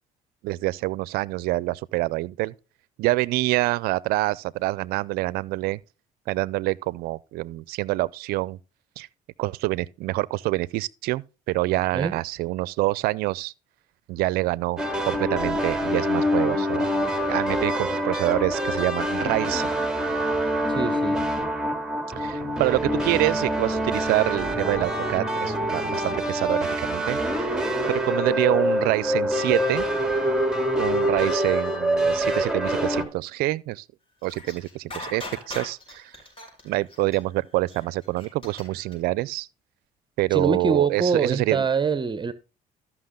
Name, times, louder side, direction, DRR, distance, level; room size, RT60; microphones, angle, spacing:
voice 1, 0.4-2.5 3.0-5.8 6.3-8.6 9.0-9.1 9.4-13.5 14.1-16.9 17.3-19.7 22.2-27.5 27.9-29.9 30.8-33.8 34.2-36.1 36.6-39.5 40.2-41.7, right 19 dB, 75° right, 0.4 m, -26 dB
sound 1, 14.8-33.0, equal, 5° right, 2.2 m, -25 dB
voice 2, 20.7-21.2 40.3-42.3, right 5 dB, 30° right, 0.8 m, -24 dB
sound 2, 34.2-38.9, left 2 dB, 35° left, 5.4 m, -39 dB
13.5 x 5.9 x 3.7 m
supercardioid pair, 70°, 16 cm